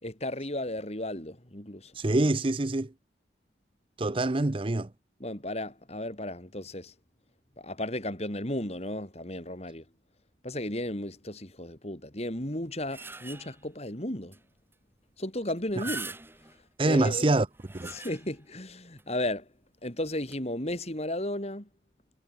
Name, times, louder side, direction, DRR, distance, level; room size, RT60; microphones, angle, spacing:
voice 1, 0.0-1.9 5.2-6.9 7.6-9.8 10.4-14.4 15.2-16.1 16.8-17.3 17.9-19.5 19.8-21.7, left 1 dB, 35° left, 3.7 m, -34 dB
voice 2, 1.9-2.9 4.0-4.9 15.8-15.9 16.8-17.5 17.7-17.9, right 2 dB, 30° right, 0.6 m, -25 dB
sound 1, 12.5-13.7 14.3-14.4 14.7-14.8 15.6-16.6 17.3-18.5 19.0-19.1 20.2-20.4, right 3 dB, 10° right, 2.7 m, -42 dB
head